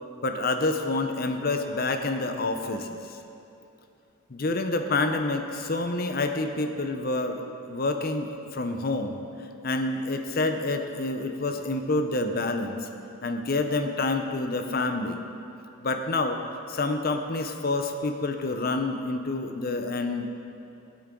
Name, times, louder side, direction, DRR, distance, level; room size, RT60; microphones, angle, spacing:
voice 1, 0.2-3.0 4.3-7.4 7.7-9.2 9.6-12.8 13.2-15.2 15.8-16.4 16.7-20.3, left 2 dB, 45° left, 6 dB, 0.7 m, -28 dB
17.5 x 8.5 x 3.8 m, 2.8 s
head